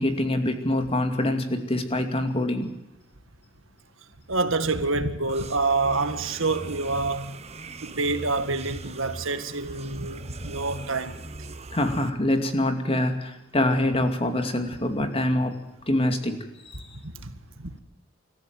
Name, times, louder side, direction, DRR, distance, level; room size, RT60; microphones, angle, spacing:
voice 1, 0.0-2.7 11.7-15.6 15.9-16.9, left 1 dB, 30° left, 2.5 m, -25 dB
voice 2, 4.3-7.4 7.8-11.5 16.9-17.7, right 3 dB, 65° right, 1.9 m, -27 dB
sound 1, 5.3-12.1, right 3 dB, 30° right, 1.2 m, -41 dB
25.5 x 14.5 x 7.8 m
head